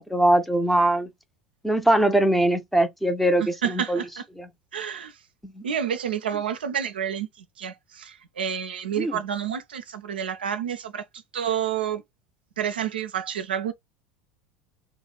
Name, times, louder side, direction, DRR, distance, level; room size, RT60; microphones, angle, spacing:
voice 1, 0.1-1.1 1.6-4.0 4.4-4.5 5.4-5.6 9.0-9.2, right 1 dB, ahead, 0.6 m, -22 dB
voice 2, 3.4-4.2 4.7-5.2 5.6-11.0 11.3-12.0 12.6-13.7, right 8 dB, 75° right, 0.4 m, -29 dB
2.4 x 2.1 x 3.9 m
figure-of-eight pair, 75°, 5 cm